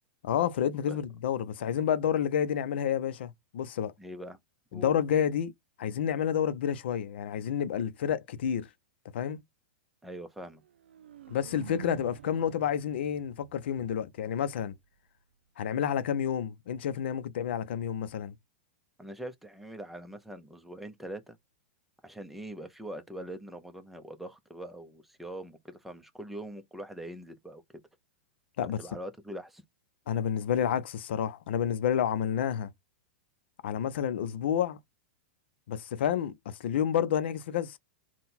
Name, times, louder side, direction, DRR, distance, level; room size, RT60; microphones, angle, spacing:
voice 1, 0.2-3.9 4.7-5.5 5.8-8.7 9.1-9.4 11.3-14.7 15.6-18.3 28.6-28.8 30.1-32.7 33.6-34.8 35.7-37.8, left 9 dB, 70° left, 0.6 m, -29 dB
voice 2, 4.0-4.4 4.7-5.0 10.0-10.6 19.0-21.4 22.0-27.6 28.8-29.6, right 1 dB, 5° right, 0.7 m, -42 dB
sound 1, 10.6-14.6, right 10 dB, 80° right, 0.4 m, -48 dB
3.7 x 2.2 x 4.3 m
hypercardioid pair, 120°, 6 cm